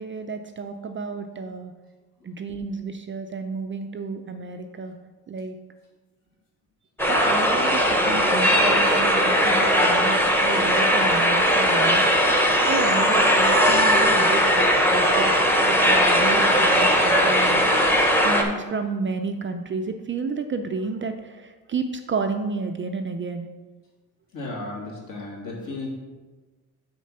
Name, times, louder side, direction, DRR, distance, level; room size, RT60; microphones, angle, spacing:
voice 1, 0.0-1.7 2.2-4.9 5.3-5.6 7.1-12.3 12.6-17.7 18.2-23.5, right 4 dB, 30° right, 6 dB, 0.4 m, -31 dB
sound 1, 7.0-18.4, equal, 5° left, 0.9 m, -19 dB
voice 2, 24.3-25.9, left 2 dB, 55° left, -3 dB, 2.4 m, -34 dB
6.6 x 4.5 x 6.6 m, 1.3 s
cardioid pair, 140°, 38 cm